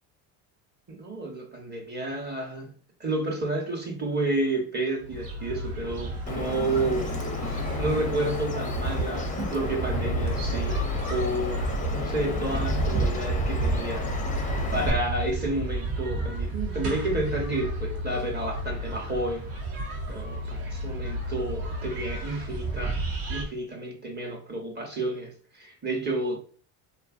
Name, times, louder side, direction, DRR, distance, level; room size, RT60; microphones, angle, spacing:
voice 1, 0.9-2.7 3.0-10.8 11.1-19.5 20.1-23.0 23.3-26.4, right 2 dB, 20° right, 0.8 m, -31 dB
sound 1, 5.0-23.4, right 1 dB, 80° right, 0.9 m, -31 dB
Bird vocalization bird call bird song, 6.3-14.9, left 3 dB, 15° left, 0.5 m, -34 dB
2.7 x 2.4 x 2.4 m
hypercardioid pair, 70°, 47 cm